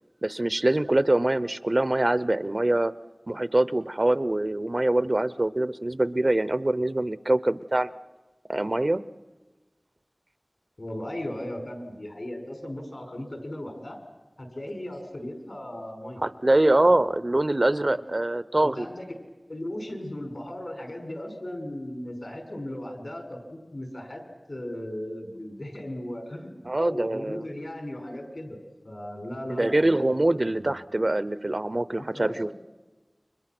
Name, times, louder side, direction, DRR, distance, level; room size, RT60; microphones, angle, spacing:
voice 1, 0.2-2.9 3.3-7.9 8.5-9.0 16.2-18.9 26.7-27.4 29.5-32.5, right 1 dB, 50° right, 16 dB, 0.7 m, -24 dB
voice 2, 10.8-14.0 14.4-16.2 16.9-17.0 17.8-18.0 18.6-19.2 19.5-24.2 24.5-30.7 32.1-32.5, left 1 dB, 70° left, 4 dB, 5.7 m, -37 dB
29.5 x 25.0 x 6.1 m, 1.2 s
wide cardioid pair, 45°, 0 cm